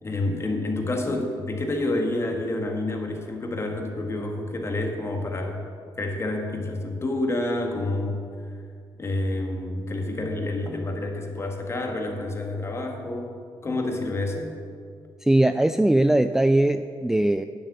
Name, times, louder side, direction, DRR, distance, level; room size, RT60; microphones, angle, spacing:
voice 1, 0.0-5.6 6.0-8.2 9.0-13.3 13.6-14.5, left 2 dB, 30° left, 2 dB, 1.7 m, -28 dB
voice 2, 15.2-17.5, right 1 dB, 5° right, 10 dB, 0.3 m, -20 dB
9.9 x 7.6 x 8.2 m, 2.3 s
cardioid pair, 110°, 9 cm